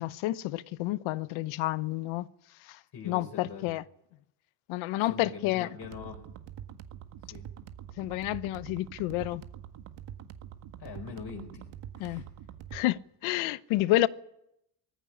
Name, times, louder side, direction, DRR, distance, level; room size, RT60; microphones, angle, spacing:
voice 1, 0.0-2.3 2.6-3.8 4.7-5.8 8.0-9.4 12.0-12.2 12.7-14.1, left 17 dB, 75° left, 1.0 m, -30 dB
voice 2, 2.9-3.7 5.0-6.3 7.2-7.5 10.8-11.7 11.9-12.2, left 5 dB, 50° left, 5.0 m, -43 dB
sound 1, 5.8-12.8, right 9 dB, 60° right, 1.8 m, -45 dB
19.0 x 15.5 x 9.9 m
cardioid pair, 100°, 49 cm